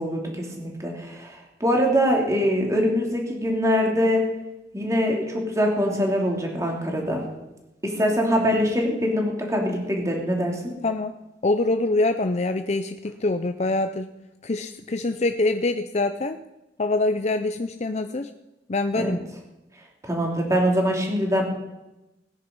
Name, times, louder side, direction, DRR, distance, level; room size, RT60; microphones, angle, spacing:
voice 1, 0.0-4.2 4.7-7.2 7.8-10.6 18.9-19.1 20.0-21.4, equal, 15° right, 0 dB, 3.1 m, -23 dB
voice 2, 11.4-14.1 14.4-16.4 16.8-18.3 18.7-19.2, left 2 dB, 40° left, 8 dB, 0.6 m, -24 dB
18.0 x 10.0 x 5.4 m, 0.95 s
head